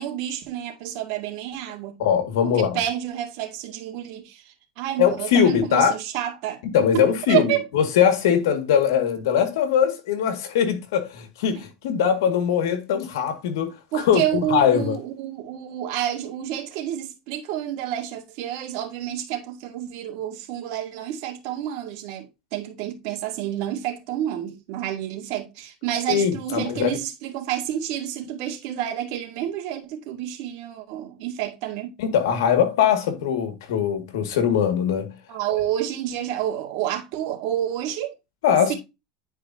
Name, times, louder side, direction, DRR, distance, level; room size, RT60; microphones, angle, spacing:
voice 1, 0.0-2.0 2.4-6.6 6.9-7.7 11.5-11.6 13.9-31.9 35.3-38.2 38.7-38.8, right 11 dB, 65° right, 2.0 m, -29 dB
voice 2, 2.0-2.8 5.0-5.9 6.7-15.0 26.1-26.9 32.0-35.1 38.4-38.7, left 8 dB, 85° left, 1.9 m, -21 dB
10.0 x 4.9 x 2.7 m
supercardioid pair, 120°, 2 cm